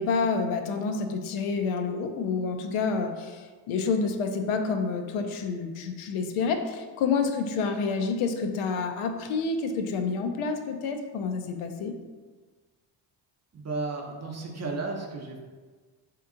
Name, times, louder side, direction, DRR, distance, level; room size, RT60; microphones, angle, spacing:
voice 1, 0.0-11.9, left 4 dB, 85° left, 5 dB, 0.6 m, -28 dB
voice 2, 13.5-15.4, right 3 dB, 35° right, 1 dB, 0.7 m, -33 dB
3.5 x 2.9 x 3.7 m, 1.4 s
cardioid pair, 95°, 49 cm